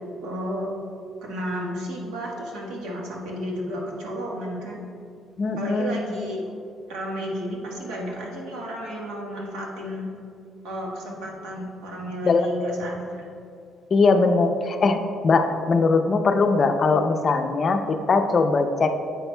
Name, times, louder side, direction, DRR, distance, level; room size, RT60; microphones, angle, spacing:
voice 1, 0.2-0.7 1.2-4.9 5.6-6.5 6.9-10.1 10.6-13.2, equal, 85° right, -2 dB, 1.3 m, -32 dB
voice 2, 5.4-6.0 12.2-12.5 13.9-18.9, left 4 dB, 40° left, 7 dB, 0.5 m, -21 dB
7.9 x 6.0 x 2.2 m, 2.4 s
cardioid pair, 100°, 0 cm